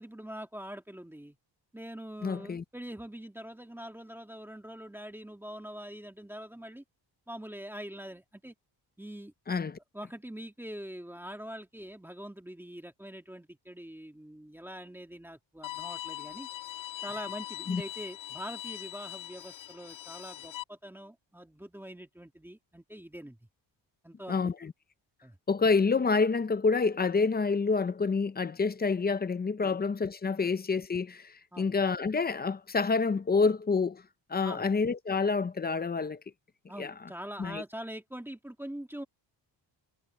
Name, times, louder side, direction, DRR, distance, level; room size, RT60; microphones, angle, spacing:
voice 1, 0.0-1.4 1.7-6.8 7.3-8.5 9.0-9.3 9.9-16.5 17.0-23.4 24.0-24.5 25.2-25.4 29.6-29.8 30.4-30.5 31.5-31.7 34.4-34.7 36.7-39.0, equal, 5° right, 2.0 m, -44 dB
voice 2, 2.2-2.6 9.5-9.8 17.7-17.8 24.3-24.7 25.5-34.0 34.3-36.2 36.8-36.9 37.4-37.6, left 4 dB, 20° left, 0.5 m, -28 dB
Bowed string instrument, 15.6-20.6, left 15 dB, 80° left, 1.9 m, -41 dB
wide cardioid pair, 170°, 46 cm